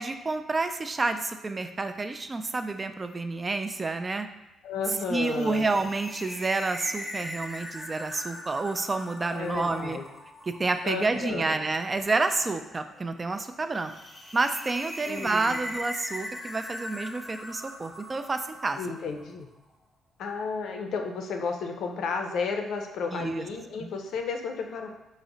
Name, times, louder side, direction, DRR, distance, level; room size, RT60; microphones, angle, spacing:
voice 1, 0.0-4.3 5.1-10.0 10.5-13.9 14.3-19.0 23.1-23.5 23.8-23.9, right 3 dB, 30° right, 8 dB, 0.3 m, -29 dB
voice 2, 4.6-5.7 9.3-10.1 10.8-11.6 15.1-15.6 18.8-19.5 20.2-24.9, left 5 dB, 75° left, 4 dB, 0.5 m, -32 dB
sound 1, 5.0-19.3, left 1 dB, 10° left, 0.8 m, -41 dB
4.7 x 2.1 x 3.8 m, 0.99 s
cardioid pair, 90°, 0 cm